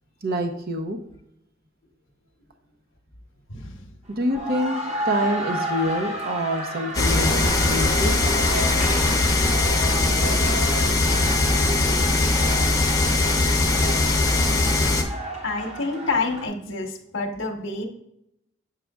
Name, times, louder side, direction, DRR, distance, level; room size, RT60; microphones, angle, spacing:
voice 1, 0.2-1.0 4.2-4.8 5.0-8.2, equal, 50° right, 5 dB, 0.7 m, -26 dB
voice 2, 3.5-3.8 15.4-17.8, left 3 dB, 65° left, 5 dB, 1.0 m, -28 dB
sound 1, 4.1-16.5, right 1 dB, 30° right, 1.1 m, -32 dB
sound 2, 6.9-15.0, left 2 dB, 15° left, 0.8 m, -20 dB
7.5 x 6.2 x 2.3 m, 0.79 s
head